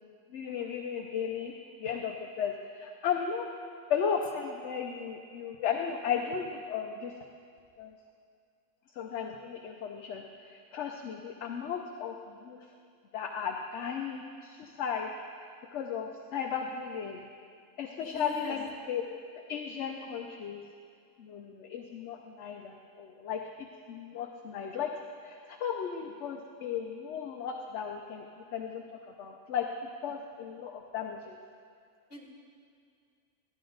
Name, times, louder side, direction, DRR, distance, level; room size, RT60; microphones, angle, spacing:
voice 1, 0.3-1.5 1.8-3.5 3.9-7.1 7.8-7.9 9.0-12.6 13.1-15.1 15.7-17.2 17.8-19.0 19.5-20.6 21.2-24.9 25.2-28.3 28.5-28.8 29.2-29.7 30.0-31.4, left 7 dB, 65° left, 2 dB, 0.9 m, -35 dB
voice 2, 18.0-18.6 32.1-32.2, left 1 dB, 45° left, -1 dB, 1.8 m, -41 dB
14.0 x 10.0 x 3.9 m, 2.3 s
omnidirectional pair, 1.4 m